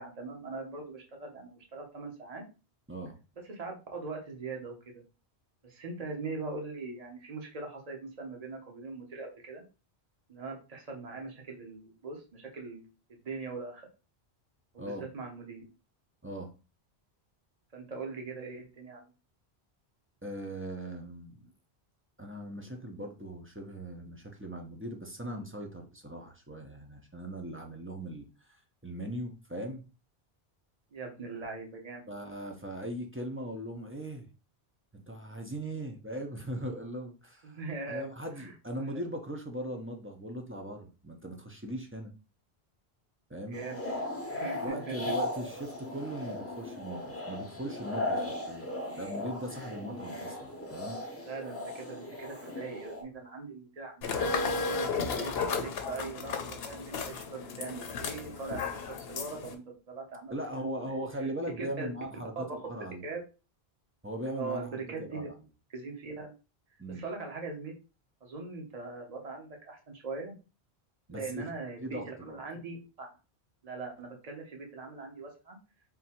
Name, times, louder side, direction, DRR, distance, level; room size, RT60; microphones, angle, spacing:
voice 1, 0.0-2.4 3.4-5.0 5.6-9.6 10.3-12.8 13.1-13.9 14.7-15.6 17.7-19.1 30.9-32.0 37.4-38.1 38.4-38.5 43.5-43.9 44.3-45.1 49.8-50.3 51.2-54.3 54.7-61.3 61.6-61.9 62.4-62.5 63.0-63.2 64.3-65.3 65.7-66.3 66.9-67.7 68.2-70.3 71.1-73.1 73.6-75.6, right 4 dB, 40° right, 2 dB, 1.1 m, -41 dB
voice 2, 20.2-21.5 22.2-29.8 32.1-34.3 34.9-37.6 37.9-42.1 43.3-43.6 44.6-48.7 49.0-51.0 60.3-63.0 64.0-65.3 66.8-67.0 71.1-71.4 71.8-72.4, right 1 dB, 15° right, 2 dB, 0.6 m, -39 dB
sound 1, 43.5-53.0, left 1 dB, 15° left, 0.8 m, -37 dB
sound 2, 54.0-59.5, left 4 dB, 70° left, 0.9 m, -34 dB
3.8 x 2.7 x 4.3 m, 0.32 s
omnidirectional pair, 1.1 m